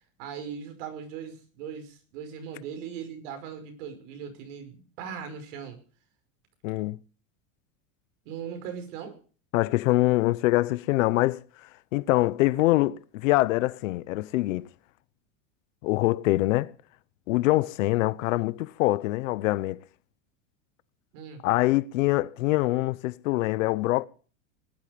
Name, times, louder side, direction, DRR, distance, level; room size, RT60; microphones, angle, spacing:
voice 1, 0.2-5.8 8.2-9.2 21.1-21.4, right 7 dB, 65° right, 5.5 m, -39 dB
voice 2, 6.6-7.0 9.5-14.7 15.8-16.7 17.3-19.8 21.4-24.1, left 19 dB, 80° left, 1.0 m, -24 dB
19.5 x 11.5 x 5.2 m
supercardioid pair, 140°, 39 cm